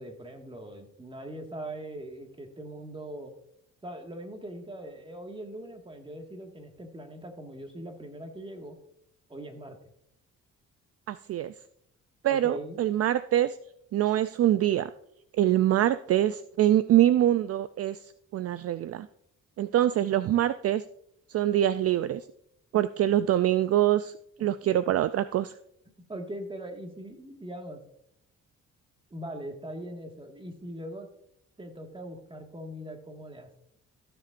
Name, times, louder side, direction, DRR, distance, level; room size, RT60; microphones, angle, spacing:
voice 1, 0.0-3.3 3.8-8.8 9.3-9.9 12.3-12.8 26.1-27.8 29.1-31.1 31.6-33.5, right 1 dB, 15° right, 3 dB, 1.8 m, -41 dB
voice 2, 11.1-11.5 12.2-13.6 13.9-14.9 15.4-18.0 18.3-19.1 19.6-20.8 21.3-22.2 22.7-24.1 24.4-25.5, right 12 dB, 55° right, 13 dB, 0.4 m, -24 dB
15.5 x 6.8 x 2.5 m, 0.71 s
cardioid pair, 90°, 30 cm